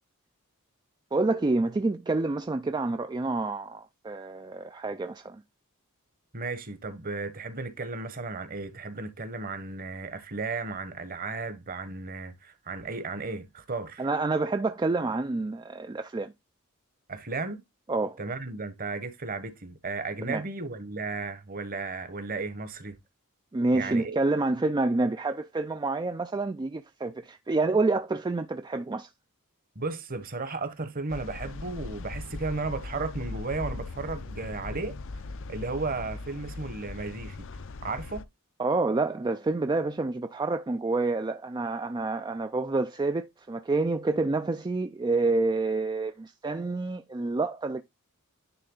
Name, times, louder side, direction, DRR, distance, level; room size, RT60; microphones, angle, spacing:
voice 1, 1.1-5.4 14.0-16.3 17.9-18.2 20.2-20.4 23.5-29.1 38.6-47.8, right 3 dB, 20° right, 0.4 m, -28 dB
voice 2, 6.3-14.1 17.1-17.6 18.2-23.0 23.7-24.2 29.7-35.0 35.5-37.5 37.8-38.2, right 3 dB, 40° right, 1.2 m, -34 dB
sound 1, 31.1-38.2, left 3 dB, 60° left, 0.6 m, -39 dB
10.0 x 3.4 x 3.8 m
head